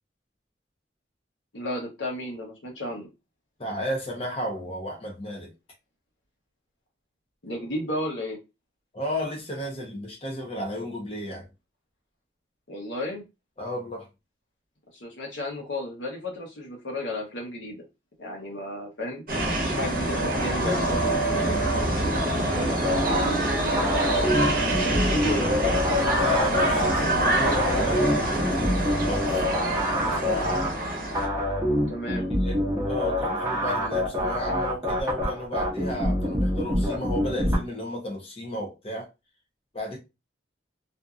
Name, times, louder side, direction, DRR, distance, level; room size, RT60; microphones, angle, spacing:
voice 1, 1.5-3.1 7.4-8.4 12.7-13.2 14.9-17.8 18.2-19.2 19.6-21.2 21.8-23.1 23.4-24.1 24.7-25.5 31.9-32.3, left 1 dB, 85° left, 1.0 m, -33 dB
voice 2, 3.6-5.5 8.9-11.5 13.6-14.1 26.2-30.8 32.4-32.6 32.9-39.1 39.7-40.0, left 1 dB, 30° left, 0.7 m, -33 dB
sound 1, 19.3-31.3, right 1 dB, 50° right, 0.8 m, -25 dB
sound 2, 22.8-37.6, equal, 15° right, 0.7 m, -26 dB
2.6 x 2.6 x 2.3 m
head